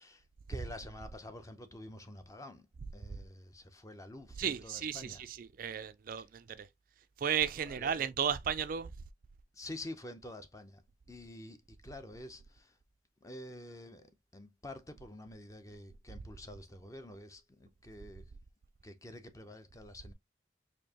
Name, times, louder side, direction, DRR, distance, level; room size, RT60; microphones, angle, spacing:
voice 1, 0.0-2.7 2.9-5.2 7.6-7.9 9.5-10.8 11.1-12.8 13.2-18.3 18.8-20.1, left 1 dB, 20° left, 0.6 m, -48 dB
voice 2, 4.4-6.7 7.2-8.9, right 8 dB, 50° right, 0.4 m, -34 dB
4.4 x 2.7 x 2.8 m
head